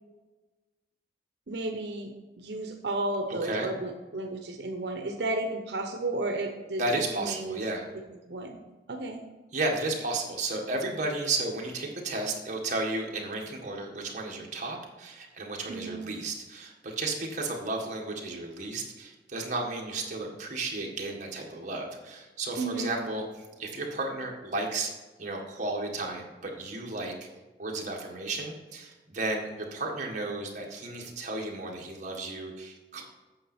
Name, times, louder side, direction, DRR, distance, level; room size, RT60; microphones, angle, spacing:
voice 1, 1.5-6.8 7.1-7.6 8.3-8.6 8.9-9.2 15.7-16.0 22.6-23.0, right 2 dB, 70° right, 3 dB, 0.9 m, -33 dB
voice 2, 6.8-7.9 9.5-23.2 23.6-24.9 25.2-27.1 27.6-33.0, right 2 dB, 45° right, 0 dB, 1.7 m, -33 dB
8.8 x 7.0 x 4.3 m, 1.2 s
head